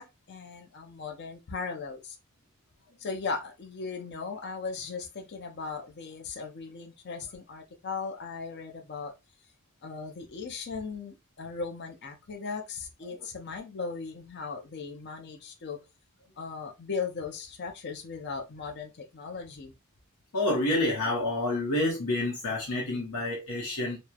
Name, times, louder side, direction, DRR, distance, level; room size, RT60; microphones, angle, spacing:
voice 1, 0.0-2.2 3.0-9.1 9.8-15.8 16.4-19.7, left 4 dB, 50° left, 0.5 m, -37 dB
voice 2, 20.3-24.0, left 1 dB, 85° left, 0.8 m, -28 dB
3.0 x 2.0 x 2.2 m
head